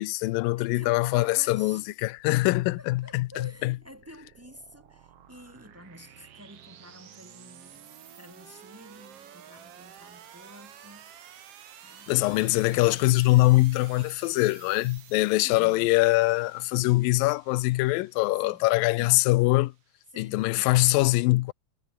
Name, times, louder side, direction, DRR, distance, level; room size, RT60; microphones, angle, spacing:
voice 1, 0.0-3.8 12.1-19.7 20.2-21.5, left 20 dB, 80° left, 2.3 m, -23 dB
voice 2, 0.6-1.9 2.8-11.4 11.8-13.1 15.4-15.9 18.4-18.7 19.0-19.1 20.1-20.8, equal, 5° right, 1.7 m, -50 dB
sound 1, 1.4-20.0, right 9 dB, 50° right, 2.0 m, -52 dB
omnidirectional pair, 4.3 m